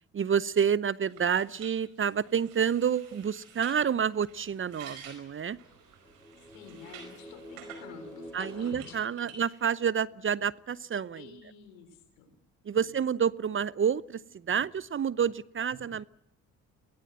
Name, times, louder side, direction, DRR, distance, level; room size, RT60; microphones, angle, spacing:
voice 1, 0.1-5.6 8.3-11.4 12.6-16.0, right 7 dB, 30° right, 21 dB, 0.7 m, -29 dB
sound 1, 1.1-7.8 8.4-9.7, right 7 dB, 80° right, 4.9 m, -51 dB
sound 2, 3.7-9.0, right 4 dB, 50° right, 7.9 m, -60 dB
sound 3, 6.0-9.9, equal, 5° left, 4.5 m, -48 dB
voice 2, 6.4-9.1 11.2-12.3 12.8-12.9, left 7 dB, 75° left, 10 dB, 3.9 m, -50 dB
23.5 x 18.5 x 7.9 m, 0.86 s
hypercardioid pair, 50°, 39 cm